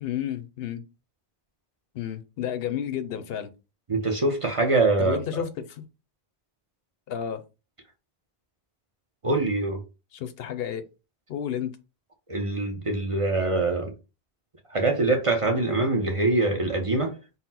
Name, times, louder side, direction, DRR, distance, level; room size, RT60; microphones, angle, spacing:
voice 1, 0.0-0.8 1.9-3.5 5.0-5.8 7.1-7.4 10.1-10.8 11.3-11.7, left 9 dB, 75° left, 0.8 m, -31 dB
voice 2, 3.9-5.4 9.2-9.8 12.3-13.9 14.7-17.1, right 2 dB, 35° right, 0.6 m, -24 dB
4.0 x 2.0 x 4.1 m
omnidirectional pair, 1.0 m